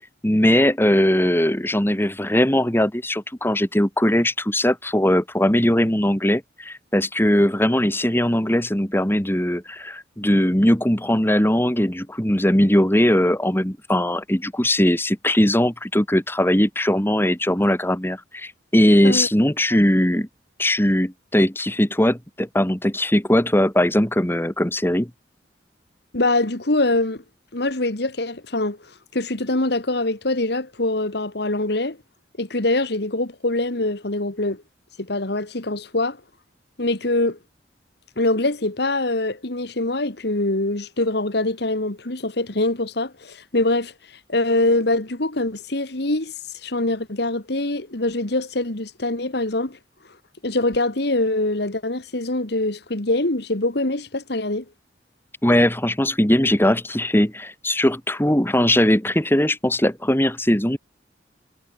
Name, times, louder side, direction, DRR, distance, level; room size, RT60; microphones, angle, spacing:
voice 1, 0.0-20.3 20.6-25.1 55.4-60.8, left 1 dB, 10° left, 2.5 m, -20 dB
voice 2, 26.1-27.2 27.5-28.8 29.1-32.0 32.4-34.6 35.0-36.2 36.8-37.4 38.2-43.9 44.3-46.3 46.6-49.8 50.4-54.6, left 2 dB, 65° left, 2.2 m, -23 dB
head